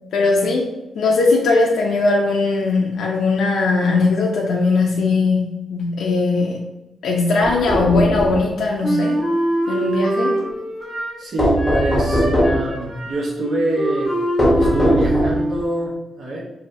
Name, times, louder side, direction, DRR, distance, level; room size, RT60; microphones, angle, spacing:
voice 1, 0.1-6.6 7.0-9.2 9.7-10.4, left 3 dB, 75° left, -2 dB, 0.6 m, -19 dB
sound 1, 7.4-8.4 11.4-12.7 14.4-15.5, equal, 10° left, 0.9 m, -19 dB
Wind instrument woodwind instrument, 8.8-11.2 11.6-15.6, right 1 dB, 35° right, 1.2 m, -24 dB
voice 2, 11.2-14.1 14.6-16.4, right 1 dB, 55° right, -3 dB, 0.9 m, -25 dB
5.6 x 2.8 x 2.6 m, 1.0 s
wide cardioid pair, 175°, 0 cm